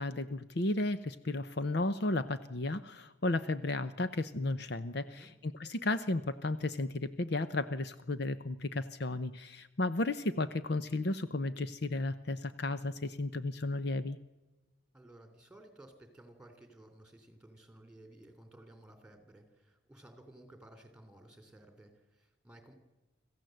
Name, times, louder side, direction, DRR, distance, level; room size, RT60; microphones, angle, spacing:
voice 1, 0.0-14.2, left 2 dB, 55° left, 12 dB, 0.8 m, -34 dB
voice 2, 14.9-22.7, right 1 dB, 5° right, 7 dB, 3.3 m, -56 dB
26.0 x 15.0 x 7.8 m, 1.1 s
head